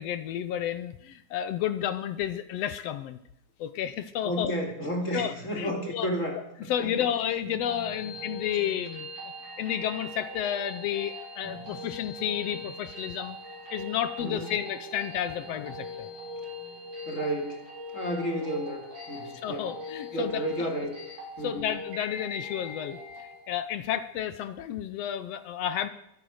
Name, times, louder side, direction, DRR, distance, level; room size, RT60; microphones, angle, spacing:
voice 1, 0.0-3.2 3.6-4.5 5.1-6.1 6.7-9.1 9.6-13.4 13.7-16.1 19.2-20.7 21.4-25.9, left 10 dB, 80° left, 12 dB, 1.4 m, -31 dB
voice 2, 4.2-6.9 14.2-14.5 17.1-17.6 17.9-19.7 20.1-20.9 21.4-21.7, equal, 25° left, 2 dB, 2.6 m, -32 dB
sound 1, 7.4-23.4, left 1 dB, 75° right, 9.1 m, -41 dB
23.5 x 9.2 x 6.4 m, 0.80 s
omnidirectional pair, 3.8 m